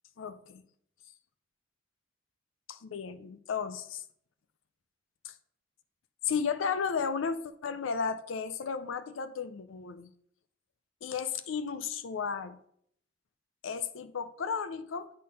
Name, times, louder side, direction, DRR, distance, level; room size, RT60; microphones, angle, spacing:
voice 1, 0.2-0.6 2.7-4.0 5.2-5.3 6.2-10.1 11.0-12.6 13.6-15.1, left 6 dB, 85° left, 11 dB, 0.5 m, -34 dB
8.6 x 3.7 x 5.1 m, 0.67 s
head